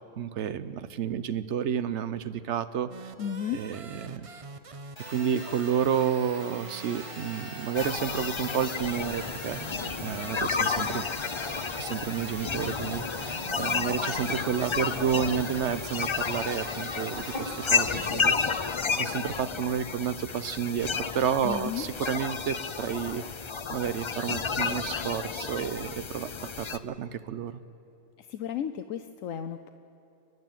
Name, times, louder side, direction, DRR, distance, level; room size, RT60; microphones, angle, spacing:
voice 1, 0.2-2.9 3.5-4.3 5.1-9.6 10.0-11.0 11.7-23.2 23.7-26.3 26.6-27.5, right 8 dB, 65° right, 13 dB, 1.1 m, -31 dB
sound 1, 2.9-18.1, right 5 dB, 35° right, 0.6 m, -44 dB
voice 2, 3.2-3.6 21.4-21.8 28.2-29.7, left 9 dB, 80° left, 8 dB, 1.1 m, -33 dB
Telephone, 5.0-17.4, equal, 30° left, 3.8 m, -45 dB
sound 2, 7.7-26.8, left 5 dB, 50° left, 0.3 m, -31 dB
30.0 x 11.0 x 9.2 m, 2.8 s
omnidirectional pair, 1.3 m